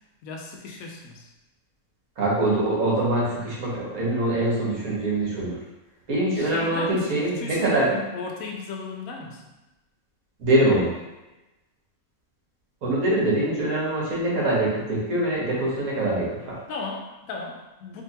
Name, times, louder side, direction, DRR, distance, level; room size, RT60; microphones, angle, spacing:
voice 1, 0.2-1.3 6.4-9.4 16.7-18.0, left 4 dB, 75° left, 1 dB, 1.0 m, -35 dB
voice 2, 2.2-5.6 6.1-7.9 10.4-11.0 12.8-16.6, right 1 dB, 75° right, -5 dB, 1.5 m, -24 dB
3.6 x 2.8 x 2.8 m, 1.0 s
omnidirectional pair, 1.5 m